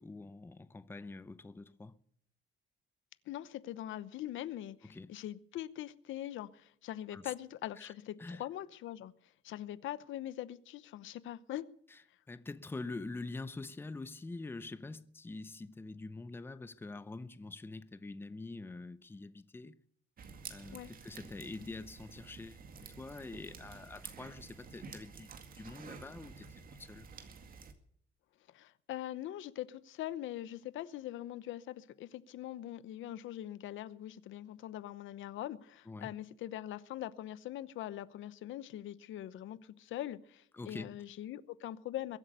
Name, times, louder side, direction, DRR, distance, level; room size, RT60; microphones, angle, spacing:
voice 1, 0.0-1.9 4.9-5.1 7.1-7.3 7.8-7.9 8.2-8.4 12.3-19.8 20.5-25.3 25.6-27.1 35.9-36.1 40.5-40.9, left 3 dB, 10° left, 0.6 m, -45 dB
voice 2, 3.3-9.1 9.4-11.6 20.7-20.9 28.5-42.2, left 13 dB, 85° left, 0.9 m, -42 dB
sound 1, 20.2-27.7, right 5 dB, 45° right, 2.2 m, -51 dB
22.5 x 8.5 x 6.7 m
cardioid pair, 145°, 20 cm